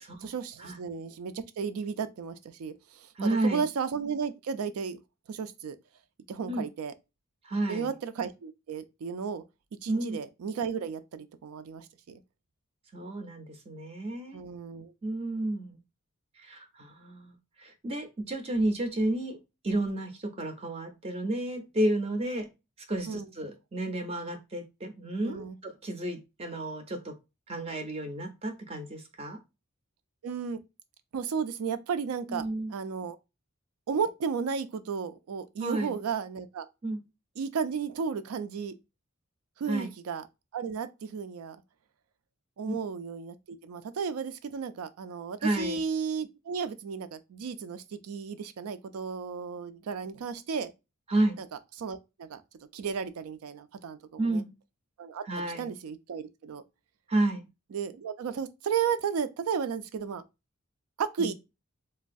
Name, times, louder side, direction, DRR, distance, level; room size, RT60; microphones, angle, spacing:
voice 1, 0.0-5.0 5.3-5.8 6.3-6.9 7.7-9.4 9.8-12.2 14.3-14.9 23.1-23.3 25.2-25.6 30.2-30.6 31.1-33.2 33.9-36.7 37.4-38.7 39.6-40.2 40.5-41.6 42.6-50.7 51.4-51.5 51.8-52.4 52.7-54.4 55.0-56.6 57.7-60.2 61.0-61.3, right 6 dB, 90° right, 0.4 m, -34 dB
voice 2, 3.2-3.6 6.5-6.7 7.4-7.9 9.9-10.2 12.9-14.4 15.0-15.8 16.4-19.4 19.6-22.5 22.9-27.2 27.5-29.4 32.3-32.7 35.6-36.0 36.8-37.0 39.7-39.9 42.7-42.8 45.4-45.8 51.1-51.4 54.2-54.5 55.3-55.7 57.1-57.4 61.2-61.3, right 1 dB, 30° right, 0.4 m, -31 dB
3.1 x 2.3 x 2.5 m
head